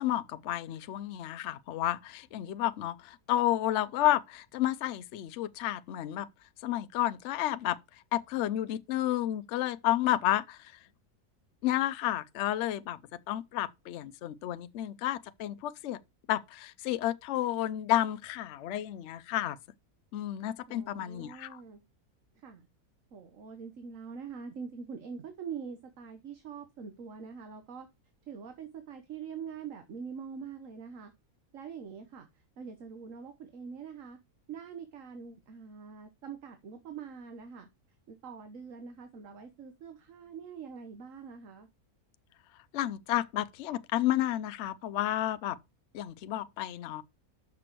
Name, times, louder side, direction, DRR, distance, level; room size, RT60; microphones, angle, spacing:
voice 1, 0.0-6.3 6.6-7.8 8.1-10.7 11.6-13.0 13.3-16.0 16.3-19.6 20.1-21.6 42.7-45.6 45.9-47.0, left 13 dB, 65° left, 0.8 m, -31 dB
voice 2, 20.7-21.8 22.3-22.7 23.1-27.9 28.3-31.1 31.5-32.3 32.6-34.2 34.5-37.7 38.1-41.7, right 6 dB, 60° right, 1.4 m, -44 dB
6.1 x 5.9 x 4.5 m
omnidirectional pair, 1.6 m